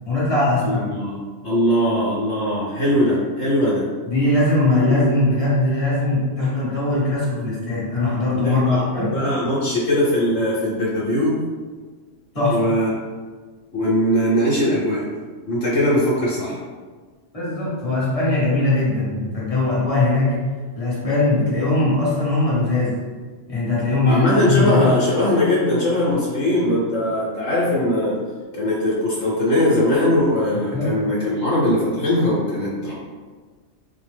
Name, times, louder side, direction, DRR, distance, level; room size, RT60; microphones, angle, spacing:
voice 1, 0.1-0.9 4.0-9.2 12.3-12.7 17.3-23.0 23.5-25.0 30.7-30.9, left 2 dB, 30° left, -7 dB, 1.2 m, -20 dB
voice 2, 0.6-3.9 4.8-4.9 8.3-11.4 12.5-12.9 13.7-15.1 15.5-16.6 24.0-28.2 28.5-32.9, left 1 dB, 70° left, -7 dB, 1.2 m, -20 dB
4.1 x 2.1 x 3.3 m, 1.5 s
omnidirectional pair, 1.3 m